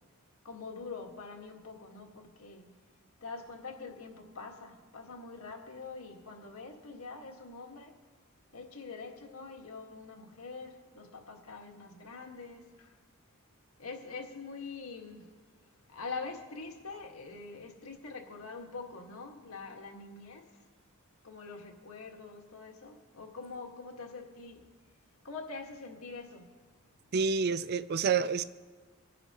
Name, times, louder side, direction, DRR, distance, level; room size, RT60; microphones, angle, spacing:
voice 1, 0.4-2.8 3.2-7.9 8.5-12.9 13.8-15.3 15.9-20.5 21.2-24.6 25.2-26.5, left 4 dB, 85° left, 1.7 m, -44 dB
voice 2, 27.1-28.4, right 5 dB, 50° right, 0.4 m, -28 dB
25.5 x 10.0 x 3.0 m
head